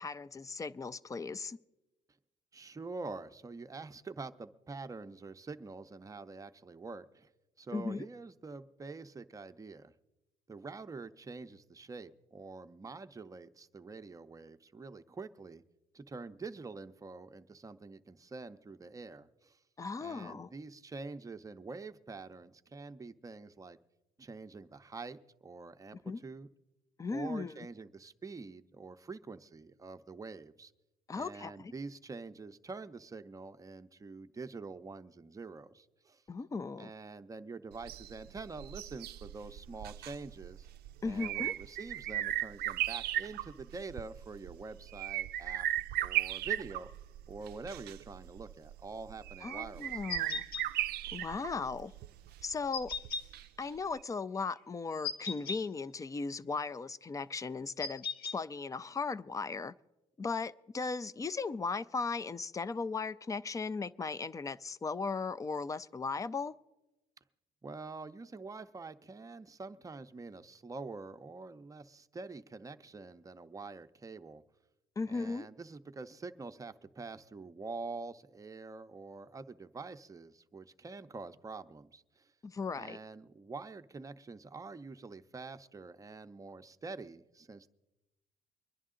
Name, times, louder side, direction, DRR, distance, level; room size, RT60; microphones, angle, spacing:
voice 1, 0.0-1.6 7.7-8.1 19.8-20.5 26.1-26.2 27.0-27.5 31.1-31.7 36.3-36.9 41.0-41.5 49.4-50.4 51.1-51.9 52.4-52.9 53.6-58.0 58.3-59.7 60.2-66.5 75.0-75.5 82.4-83.0, left 4 dB, 20° left, 0.4 m, -37 dB
voice 2, 2.5-7.3 7.6-9.9 10.5-15.6 15.9-19.6 20.0-23.8 24.2-26.5 27.1-30.7 31.1-36.2 36.8-40.7 41.0-45.7 46.0-46.9 47.3-50.0 67.6-74.4 75.1-82.3 82.8-87.7, right 4 dB, 20° right, 0.6 m, -46 dB
sound 1, 37.7-53.7 54.0-54.1, right 13 dB, 70° right, 0.4 m, -37 dB
sound 2, 50.1-50.6 52.7-53.2 55.0-55.6 57.8-58.4, left 5 dB, 65° left, 1.1 m, -37 dB
24.0 x 10.5 x 3.8 m
cardioid pair, 110°, 17 cm